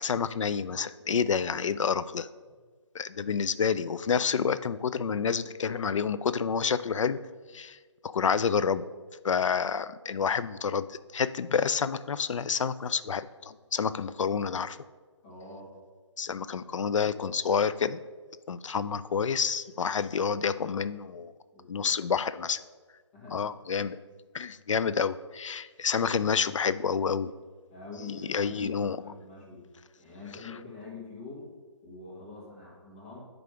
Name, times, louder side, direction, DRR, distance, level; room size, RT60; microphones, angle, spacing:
voice 1, 0.0-2.3 2.9-7.2 7.5-7.8 8.0-8.9 9.2-14.8 16.2-18.0 18.5-21.3 21.7-22.6 23.3-24.0 24.3-27.3 28.3-29.0, left 6 dB, 85° left, 14 dB, 0.4 m, -28 dB
voice 2, 15.2-15.7 21.5-22.1 23.1-23.6 27.7-29.7 30.0-31.5 31.8-33.2, left 4 dB, 25° left, -4 dB, 1.8 m, -45 dB
9.6 x 3.4 x 5.0 m, 1.4 s
hypercardioid pair, 170°, 16 cm